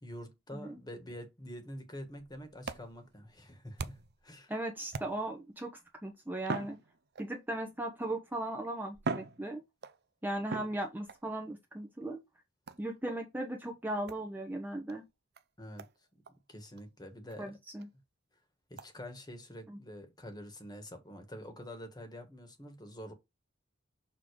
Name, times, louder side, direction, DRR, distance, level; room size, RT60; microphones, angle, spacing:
voice 1, 0.0-4.5 15.6-15.8 16.5-17.6 18.7-23.1, equal, 20° left, 1.5 m, -46 dB
sound 1, 2.1-4.3 4.9-5.5 6.4-7.5 8.4-8.5 8.9-10.0 10.5-11.2 12.7-13.0 14.1-14.3 14.9-15.0 15.4-15.5 15.8-16.0 16.3-16.4 16.8-16.9 17.3-17.4 17.8-17.9 18.8-18.9, right 4 dB, 55° right, 0.6 m, -41 dB
voice 2, 4.5-5.7 6.0-6.8 7.2-9.6 10.2-12.2 12.8-15.0 17.4-17.9 19.7-19.8, right 1 dB, 10° right, 0.9 m, -37 dB
6.8 x 3.8 x 4.7 m
head